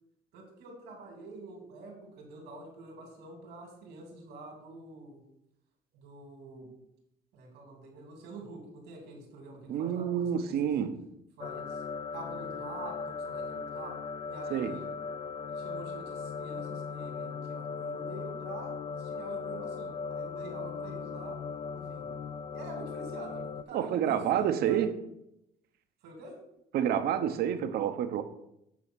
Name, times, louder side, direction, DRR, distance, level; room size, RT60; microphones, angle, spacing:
voice 1, 0.3-5.2 5.9-6.7 7.3-10.7 11.4-11.8 12.1-14.0 14.3-14.9 15.5-21.4 21.7-22.1 22.5-24.8 26.0-26.4, right 2 dB, 90° right, 2.7 m, -46 dB
voice 2, 9.7-11.0 14.5-14.7 23.7-25.0 26.7-28.2, right 9 dB, 70° right, 0.8 m, -28 dB
sound 1, 11.4-23.6, left 5 dB, 35° left, 0.4 m, -38 dB
8.4 x 4.2 x 6.2 m
cardioid pair, 110°, 17 cm